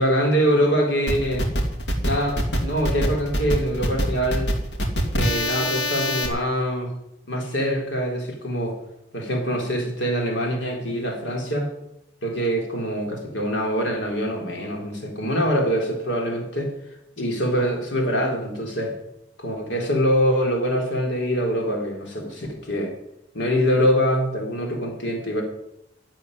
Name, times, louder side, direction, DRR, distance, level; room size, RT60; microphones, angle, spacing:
voice 1, 0.0-1.5 2.0-4.5 5.1-6.9 7.3-8.8 9.1-11.7 12.2-16.7 17.2-18.9 19.4-22.9 23.3-25.4, equal, 80° left, 1 dB, 4.0 m, -24 dB
sound 1, 1.1-6.3, equal, 65° left, 2.3 m, -24 dB
12.0 x 7.7 x 10.0 m, 0.82 s
head